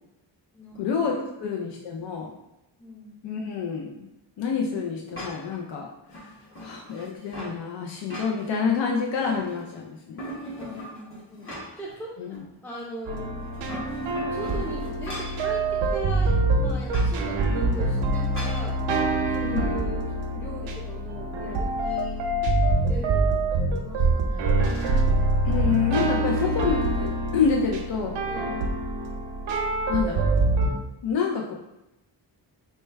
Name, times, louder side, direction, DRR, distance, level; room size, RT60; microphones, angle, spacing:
voice 1, 0.8-1.1 1.4-2.3 3.2-4.1 4.4-5.9 6.1-6.3 6.6-10.2 12.2-12.4 19.4-19.7 25.4-28.3 29.9-30.2 31.0-31.5, left 6 dB, 75° left, 0 dB, 0.6 m, -28 dB
voice 2, 2.8-3.2 10.5-13.5 14.2-18.8 19.3-22.3 22.9-24.6 28.2-28.7, equal, 5° left, -4 dB, 0.5 m, -39 dB
sound 1, 5.1-5.6 6.1-7.6 7.9-8.7 9.0-9.8 10.2-11.9 12.3-12.4 13.4-15.4 16.9-17.1 18.3-18.6, equal, 30° left, 0.9 m, -39 dB
sound 2, 13.1-30.7, right 2 dB, 90° right, 0.6 m, -25 dB
4.3 x 2.2 x 3.3 m, 0.93 s
wide cardioid pair, 130°, 44 cm